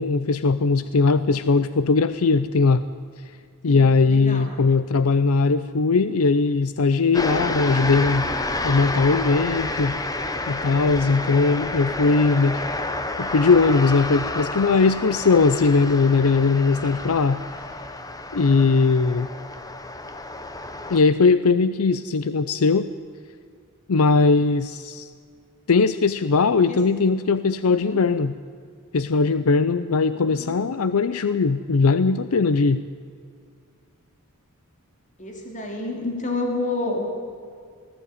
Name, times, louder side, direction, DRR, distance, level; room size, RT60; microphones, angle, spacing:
voice 1, 0.0-2.8 3.6-8.3 8.6-10.0 10.5-12.6 13.2-17.4 18.3-19.3 20.9-22.9 23.9-25.1 25.7-28.3 28.9-32.8, left 4 dB, 75° left, 13 dB, 0.6 m, -19 dB
voice 2, 3.7-4.5 26.7-26.8 27.6-28.0 30.2-30.6 35.2-37.1, left 2 dB, 35° left, 2 dB, 3.0 m, -30 dB
sound 1, 7.1-21.0, left 2 dB, 15° left, 1.1 m, -30 dB
20.0 x 14.5 x 9.6 m, 2.2 s
head